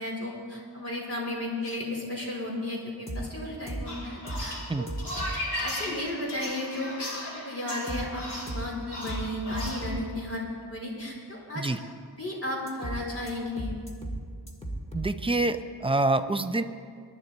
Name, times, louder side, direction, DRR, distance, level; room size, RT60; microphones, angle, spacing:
voice 1, 0.0-4.9 5.3-7.1 7.4-11.7 12.2-13.7, left 1 dB, 35° left, -3 dB, 4.2 m, -34 dB
sound 1, 1.6-1.8 4.5-5.0 5.3-6.0 6.3-6.5, left 3 dB, 90° left, 1.7 m, -45 dB
sound 2, 3.1-3.2 3.7-3.8 4.3-4.4 4.9-5.3 7.9-8.0 8.5-8.6 9.1-9.2 9.5-10.0 12.7-13.0 13.3-13.4 13.6-14.2 14.5-15.1, right 1 dB, 15° left, 1.8 m, -34 dB
sound 3, 3.9-9.8, left 1 dB, 75° left, 3.4 m, -36 dB
voice 2, 14.9-16.6, right 2 dB, 15° right, 9 dB, 0.6 m, -26 dB
23.0 x 11.0 x 4.1 m, 2.1 s
wide cardioid pair, 110°, 42 cm